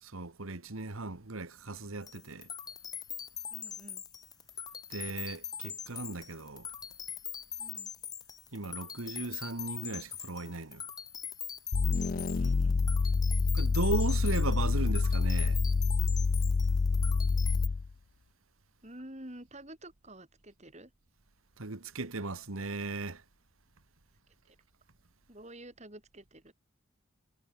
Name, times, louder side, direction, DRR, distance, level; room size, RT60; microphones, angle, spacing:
voice 1, 0.0-2.5 4.9-6.7 8.5-10.8 13.5-15.6 21.6-23.2, right 2 dB, 85° right, 1.8 m, -36 dB
sound 1, 2.0-17.7, left 7 dB, 20° left, 1.3 m, -42 dB
voice 2, 3.5-4.0 7.6-7.9 12.1-12.8 18.8-20.9 24.5-24.6 25.3-26.5, right 1 dB, 35° right, 5.1 m, -49 dB
sound 2, 11.7-17.9, left 4 dB, 40° left, 0.4 m, -27 dB
head